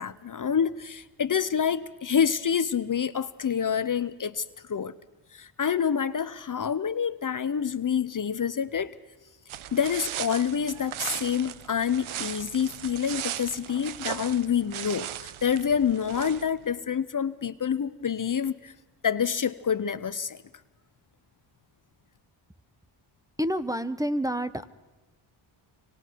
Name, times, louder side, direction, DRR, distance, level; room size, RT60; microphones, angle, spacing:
voice 1, 0.0-4.9 5.3-8.9 9.7-18.7 19.0-20.4, left 7 dB, 40° left, 14 dB, 0.8 m, -27 dB
sound 1, 9.5-16.6, right 12 dB, 80° right, 0.8 m, -37 dB
voice 2, 23.4-24.7, equal, 5° right, 13 dB, 0.9 m, -28 dB
26.5 x 25.0 x 4.6 m, 1.1 s
cardioid pair, 70°, 48 cm